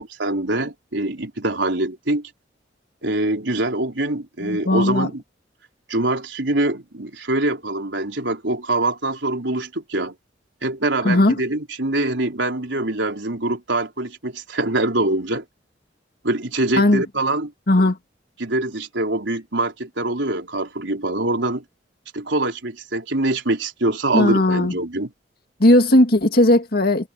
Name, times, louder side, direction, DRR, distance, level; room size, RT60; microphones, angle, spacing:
voice 1, 0.2-2.3 3.0-5.2 5.9-10.1 10.6-15.4 16.2-17.5 18.4-21.6 22.1-25.1, right 2 dB, 80° right, 3.9 m, -24 dB
voice 2, 4.4-5.1 11.0-11.4 16.8-17.0 17.7-18.0 24.1-24.7 25.6-27.1, left 1 dB, 55° left, 1.9 m, -17 dB
head